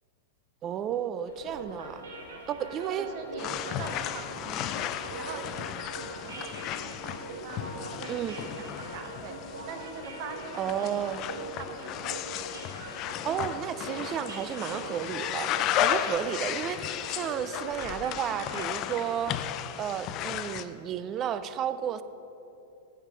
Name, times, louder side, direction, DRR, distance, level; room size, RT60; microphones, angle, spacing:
voice 1, 0.6-2.1 2.5-3.1 8.1-8.4 10.5-11.3 13.2-19.4 19.8-22.0, right 9 dB, 35° right, 13 dB, 0.4 m, -32 dB
sound 1, 1.3-13.5, left 3 dB, 80° left, 1.5 m, -49 dB
sound 2, 1.3-19.1, right 3 dB, 85° right, 1.2 m, -43 dB
voice 2, 2.6-12.6, right 5 dB, 55° right, 6 dB, 1.0 m, -44 dB
sound 3, 3.4-20.6, left 11 dB, 40° left, 0.4 m, -34 dB
8.7 x 6.6 x 4.9 m, 2.9 s
hypercardioid pair, 115°, 0 cm